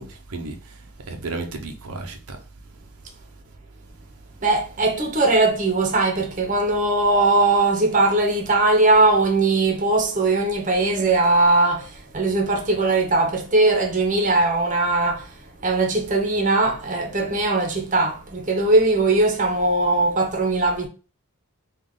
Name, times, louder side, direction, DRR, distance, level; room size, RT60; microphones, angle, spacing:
voice 1, 0.0-2.4, right 3 dB, 85° right, 0.7 m, -34 dB
voice 2, 4.4-20.9, right 2 dB, 35° right, 0.8 m, -20 dB
3.6 x 2.4 x 3.6 m
head